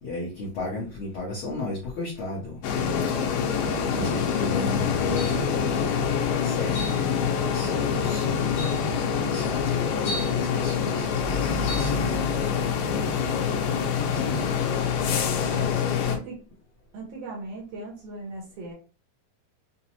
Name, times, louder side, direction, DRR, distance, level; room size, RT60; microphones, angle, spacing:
voice 1, 0.0-3.1 3.9-5.5 6.4-6.8 7.4-8.4 9.1-13.3 14.1-14.4 15.2-15.7, left 2 dB, 75° left, -5 dB, 1.2 m, -35 dB
sound 1, 2.6-16.2, left 7 dB, 90° left, 2.4 m, -25 dB
sound 2, 5.2-5.5 6.7-7.0 8.0-8.1 8.6-8.9 10.1-10.4 11.7-11.9, left 1 dB, 50° left, 1.4 m, -35 dB
voice 2, 16.0-16.4 16.9-18.7, right 2 dB, 75° right, -1 dB, 1.5 m, -38 dB
5.8 x 2.0 x 2.9 m, 0.34 s
omnidirectional pair, 3.9 m